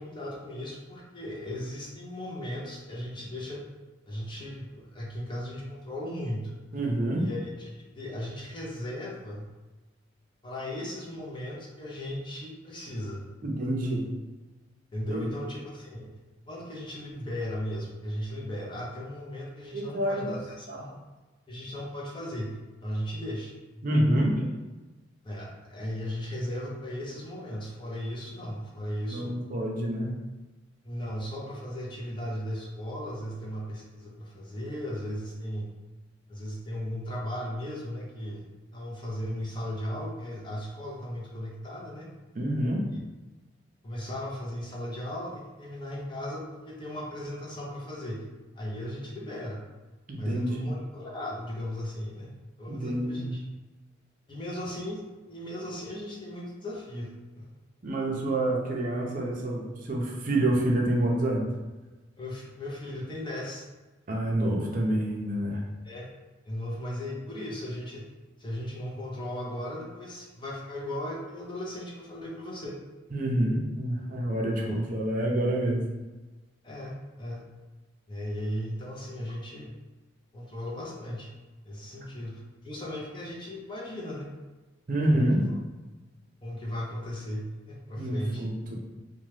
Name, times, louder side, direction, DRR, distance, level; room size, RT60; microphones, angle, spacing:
voice 1, 0.0-3.6 4.1-6.5 7.2-9.5 10.4-13.3 14.9-16.1 16.5-20.9 21.5-23.5 25.2-29.3 30.8-35.7 36.3-38.5 38.7-42.1 42.9-43.0 43.8-48.3 48.6-49.6 50.2-52.3 52.6-53.4 54.3-57.5 62.2-63.6 65.8-66.1 66.4-68.1 68.4-72.8 74.6-74.8 76.6-77.4 78.1-79.7 80.3-81.3 81.6-84.3 85.1-85.5 86.4-88.4, equal, 25° left, -3 dB, 0.5 m, -36 dB
voice 2, 6.7-7.2 13.4-14.1 15.1-15.3 19.7-20.3 20.7-20.8 23.8-24.5 29.1-30.1 42.4-42.8 50.1-50.7 52.7-53.4 57.8-61.5 64.1-65.6 73.1-75.8 84.9-85.4 88.0-88.8, right 1 dB, 45° right, -1 dB, 0.5 m, -27 dB
2.8 x 2.2 x 3.2 m, 1.2 s
head